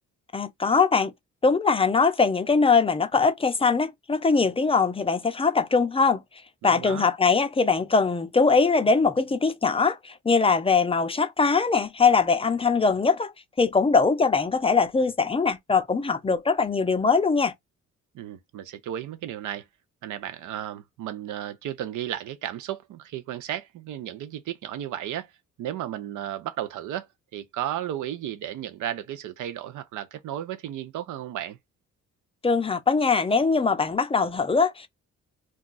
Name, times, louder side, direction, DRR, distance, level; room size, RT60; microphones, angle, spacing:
voice 1, 0.3-1.1 1.4-6.2 6.6-13.3 13.6-17.5 32.4-34.9, left 4 dB, 20° left, 0.5 m, -22 dB
voice 2, 6.6-7.1 18.1-19.6 20.0-25.3 25.6-27.1 27.3-31.6, right 11 dB, 80° right, 0.6 m, -34 dB
2.4 x 2.3 x 3.8 m
cardioid pair, 90°, 30 cm